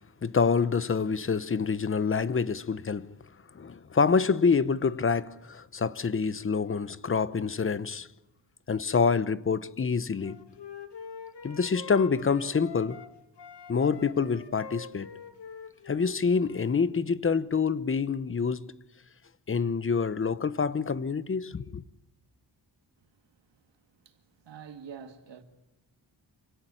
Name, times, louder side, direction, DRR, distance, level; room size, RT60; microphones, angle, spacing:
voice 1, 0.2-3.1 3.5-8.1 8.7-10.4 11.4-13.0 13.7-15.1 15.9-18.7 19.5-21.8, left 5 dB, 30° left, 0.9 m, -27 dB
Wind instrument woodwind instrument, 10.2-13.1 13.4-16.9, left 6 dB, 75° left, 2.2 m, -45 dB
voice 2, 23.0-25.4, right 7 dB, 80° right, 2.4 m, -48 dB
27.5 x 18.0 x 9.8 m
wide cardioid pair, 155°, 42 cm